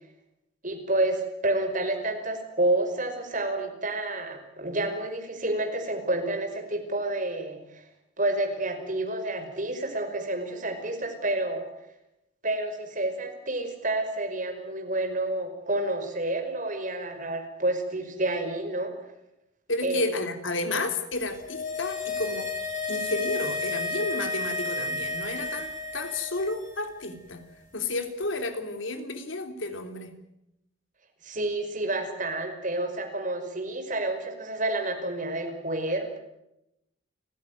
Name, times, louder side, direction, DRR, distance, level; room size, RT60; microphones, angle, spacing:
voice 1, 0.6-7.8 8.2-11.7 12.4-18.9 19.8-20.0 31.2-36.2, right 2 dB, 40° right, 5 dB, 5.4 m, -29 dB
voice 2, 19.7-22.5 22.9-27.4 27.7-30.1, left 2 dB, 70° left, 7 dB, 3.3 m, -31 dB
sound 1, 21.2-26.7 27.0-27.1, left 3 dB, 40° left, 6.2 m, -32 dB
30.0 x 16.0 x 9.5 m, 0.86 s
head